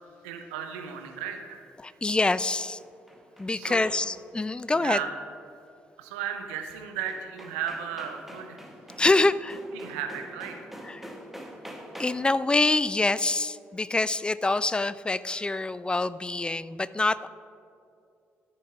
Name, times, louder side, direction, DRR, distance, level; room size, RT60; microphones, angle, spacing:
voice 1, 0.2-2.0 3.5-3.9 4.7-5.1 6.0-8.6 9.7-10.7 15.3-15.4, right 8 dB, 75° right, 5 dB, 0.8 m, -35 dB
voice 2, 1.8-2.8 3.4-5.0 9.0-9.6 10.8-11.1 12.0-17.3, left 2 dB, 15° left, 17 dB, 0.3 m, -25 dB
sound 1, 2.6-4.3 6.7-6.8 7.1-12.4, equal, 5° right, 1.2 m, -45 dB
13.5 x 7.0 x 3.7 m, 2.5 s
figure-of-eight pair, 45°, 7 cm